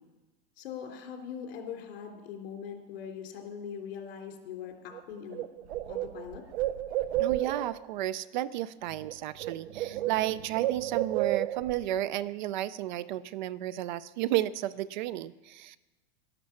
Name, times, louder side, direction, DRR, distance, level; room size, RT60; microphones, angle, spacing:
voice 1, 0.6-5.4 5.9-6.4, left 7 dB, 65° left, 3 dB, 3.2 m, -41 dB
Bird, 4.9-5.0 5.3-7.8 8.9-9.1 9.4-11.8, right 14 dB, 80° right, 0.7 m, -31 dB
voice 2, 7.2-15.8, right 14 dB, 50° right, 19 dB, 0.4 m, -32 dB
12.0 x 11.5 x 7.0 m, 1.2 s
supercardioid pair, 160°, 31 cm